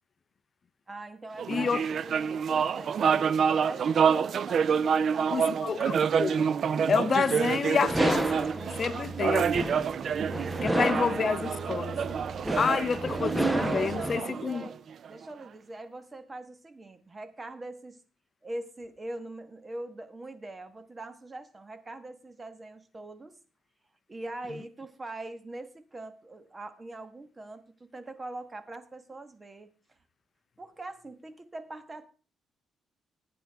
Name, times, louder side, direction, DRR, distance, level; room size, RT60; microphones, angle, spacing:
voice 1, 0.9-5.9 10.4-10.9 11.1-11.2 12.7-12.9 13.5-14.8 15.1-18.0 18.4-23.4 24.1-29.7 30.6-32.1, right 2 dB, 25° right, 1.3 m, -42 dB
sound 1, 1.4-15.1, right 7 dB, 55° right, 0.4 m, -28 dB
voice 2, 1.5-1.8 5.3-6.4 6.9-8.4 8.7-9.7 10.6-12.0 12.6-14.6, left 6 dB, 40° left, 0.6 m, -29 dB
sound 2, 7.9-14.2, right 1 dB, 5° right, 0.9 m, -32 dB
16.0 x 9.3 x 3.5 m
cardioid pair, 105°, 0 cm